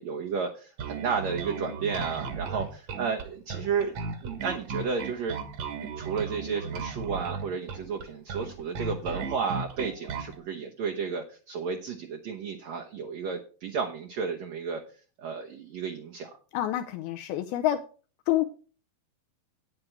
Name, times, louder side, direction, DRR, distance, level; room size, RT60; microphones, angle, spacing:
voice 1, 0.0-3.9 4.2-5.4 5.8-14.8 15.2-16.3, right 5 dB, 80° right, 2 dB, 1.5 m, -32 dB
Bass guitar, 0.8-10.4, right 5 dB, 60° right, 1.9 m, -35 dB
voice 2, 16.5-17.8 18.3-18.5, left 13 dB, 80° left, 6 dB, 2.3 m, -27 dB
9.6 x 9.2 x 4.6 m, 0.38 s
omnidirectional pair, 4.8 m